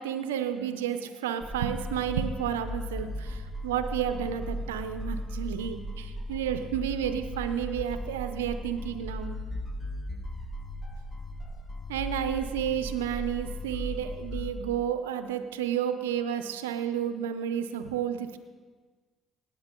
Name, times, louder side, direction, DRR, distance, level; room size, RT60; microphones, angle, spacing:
voice 1, 0.0-9.4 11.9-18.4, right 9 dB, 90° right, 9 dB, 0.6 m, -31 dB
sound 1, 1.4-14.5, left 1 dB, 25° left, 1.6 m, -37 dB
18.0 x 8.8 x 3.8 m, 1.4 s
hypercardioid pair, 55°, 0 cm